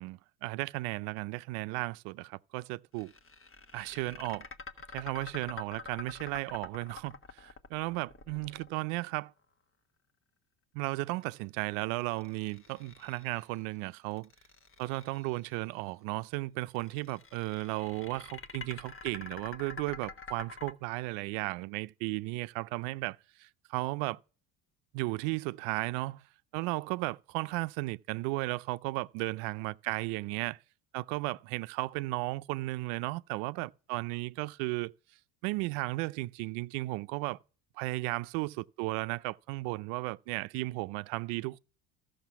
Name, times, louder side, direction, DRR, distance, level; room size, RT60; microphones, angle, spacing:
voice 1, 0.0-3.1 3.7-4.4 4.9-9.3 10.7-14.3 14.8-24.2 24.9-26.2 26.5-30.6 30.9-34.9 35.4-37.4 37.8-41.6, right 22 dB, 75° right, 0.6 m, -35 dB
sound 1, 3.0-9.2 12.0-13.6 14.1-15.5 16.7-20.7, left 4 dB, 25° left, 1.3 m, -47 dB
13.5 x 6.6 x 5.8 m
supercardioid pair, 80°, 47 cm